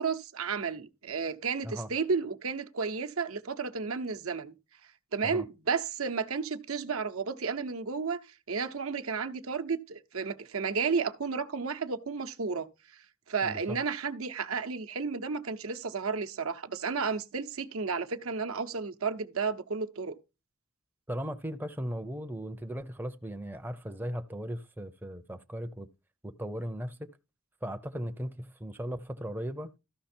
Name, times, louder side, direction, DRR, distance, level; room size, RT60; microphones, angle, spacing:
voice 1, 0.0-4.5 5.1-8.2 8.5-20.2, right 5 dB, 75° right, 0.9 m, -32 dB
voice 2, 13.4-13.8 21.1-25.9 26.2-27.1 27.6-29.7, equal, 10° right, 0.5 m, -37 dB
13.0 x 5.8 x 4.4 m
head